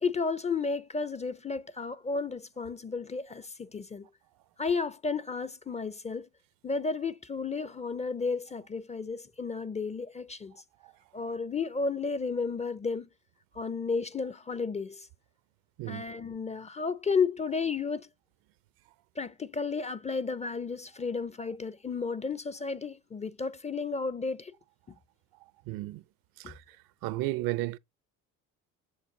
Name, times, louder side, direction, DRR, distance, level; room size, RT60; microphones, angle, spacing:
voice 1, 0.0-4.1 4.6-6.3 6.6-10.5 11.1-13.1 13.5-15.1 15.9-18.1 19.2-24.5 26.4-26.5, left 4 dB, 20° left, 0.4 m, -32 dB
voice 2, 25.7-26.0 26.5-26.6 27.0-27.8, right 17 dB, 70° right, 0.6 m, -32 dB
7.0 x 6.6 x 2.6 m
supercardioid pair, 85°, 37 cm